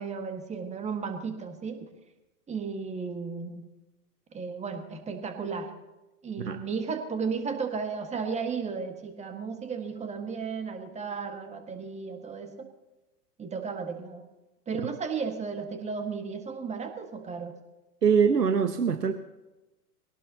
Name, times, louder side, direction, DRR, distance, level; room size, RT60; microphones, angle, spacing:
voice 1, 0.0-1.9 2.5-3.6 4.3-5.7 6.2-12.7 13.4-14.2 14.7-17.5, right 5 dB, 15° right, 6 dB, 1.7 m, -34 dB
voice 2, 18.0-19.1, right 6 dB, 80° right, 9 dB, 1.0 m, -23 dB
22.0 x 18.0 x 2.9 m, 1.0 s
figure-of-eight pair, 100°, 48 cm